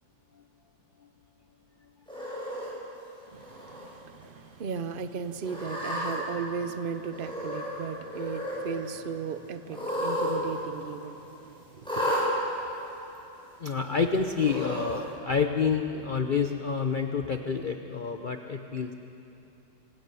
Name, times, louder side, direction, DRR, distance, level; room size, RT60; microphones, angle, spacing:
Cat, 2.1-2.7 3.4-3.8 4.2-4.3 5.4-6.1 7.1-7.8 8.0-8.6 9.7-10.3 10.6-10.7 11.8-12.2 13.1-13.2 14.4-14.9, equal, ahead, 6.3 m, -32 dB
voice 1, 3.3-12.2, right 6 dB, 60° right, 0.5 m, -36 dB
voice 2, 13.6-18.9, left 5 dB, 70° left, 0.4 m, -28 dB
25.5 x 17.0 x 6.9 m
omnidirectional pair, 2.0 m